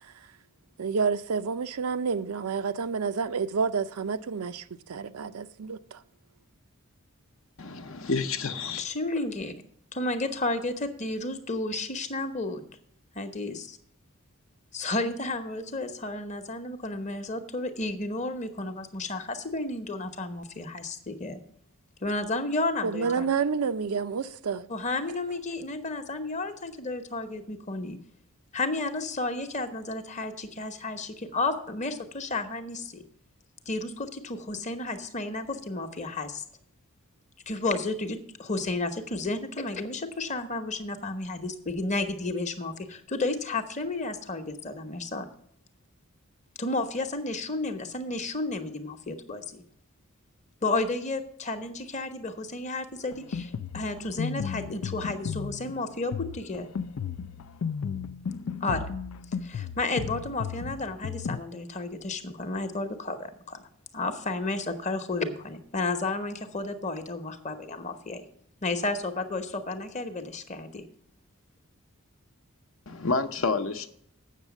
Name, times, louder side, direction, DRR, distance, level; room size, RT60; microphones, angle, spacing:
voice 1, 0.8-6.0 22.8-24.7, right 5 dB, 80° right, 0.5 m, -29 dB
voice 2, 7.6-8.8 72.9-73.9, left 4 dB, 65° left, 0.8 m, -29 dB
voice 3, 8.8-9.5 9.9-12.6 13.1-13.8 14.7-21.4 22.0-23.3 24.7-28.0 28.5-33.0 33.7-36.4 37.5-45.3 46.6-49.6 50.6-56.7 58.6-58.9 59.4-63.6 63.9-68.2 68.6-70.8, left 2 dB, 30° left, 0.9 m, -32 dB
Drum kit, 53.1-61.4, left 6 dB, 80° left, 0.4 m, -34 dB
8.4 x 6.4 x 7.1 m
head